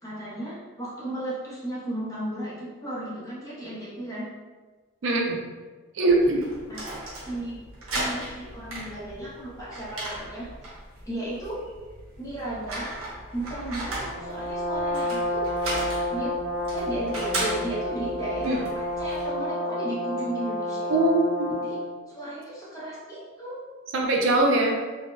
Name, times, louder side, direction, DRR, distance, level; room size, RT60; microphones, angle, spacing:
voice 1, 0.0-4.3 6.7-6.9 7.2-7.7 7.9-10.5 11.0-11.6 12.2-12.9 13.3-15.5 16.1-16.4 16.7-20.9 21.6-21.8 22.1-23.6, right 1 dB, 15° left, -8 dB, 0.6 m, -35 dB
voice 2, 5.0-5.4 5.9-6.4 18.4-18.6 20.9-21.5 23.9-24.8, right 2 dB, 65° right, 1 dB, 0.4 m, -21 dB
sound 1, 6.1-19.3, right 1 dB, 80° right, 0.8 m, -36 dB
Brass instrument, 14.2-21.9, left 1 dB, 50° right, 1.0 m, -30 dB
3.8 x 2.1 x 2.5 m, 1.3 s
head